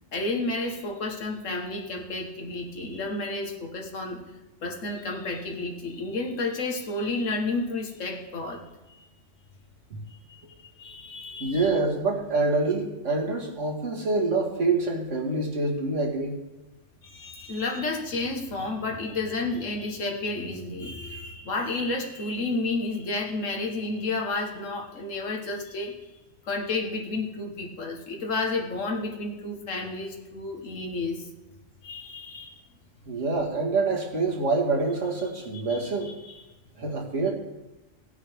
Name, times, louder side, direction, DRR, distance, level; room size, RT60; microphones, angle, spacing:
voice 1, 0.1-4.2 4.6-8.6 8.9-9.1 10.1-11.7 17.0-26.0 26.5-31.3 31.8-32.6 35.7-36.1, left 2 dB, 80° left, 1 dB, 1.8 m, -31 dB
voice 2, 11.4-16.4 33.1-36.1 36.8-37.3, right 3 dB, 75° right, -1 dB, 2.2 m, -26 dB
16.5 x 9.6 x 3.5 m, 1.0 s
omnidirectional pair, 1.3 m